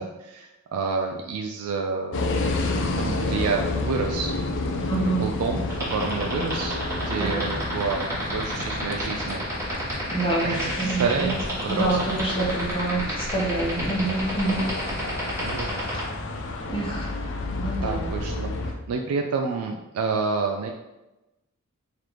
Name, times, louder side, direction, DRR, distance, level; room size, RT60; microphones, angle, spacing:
voice 1, 0.0-2.6 3.0-4.3 5.2-9.9 10.4-11.3 11.6-12.0 12.6-12.7 15.4-15.7 16.5-16.6 17.8-18.5 18.9-20.7, right 4 dB, 75° right, 3 dB, 0.3 m, -29 dB
sound 1, 2.1-18.7, left 2 dB, 55° left, 0.5 m, -30 dB
voice 2, 4.9-5.2 5.5-5.6 7.1-7.7 10.1-11.4 11.7-14.7 16.7-17.1 17.5-18.1, right 2 dB, 25° left, -3 dB, 0.9 m, -27 dB
sound 2, 5.7-16.0, right 2 dB, 15° right, 1.2 m, -31 dB
3.8 x 3.3 x 3.0 m, 1.0 s
head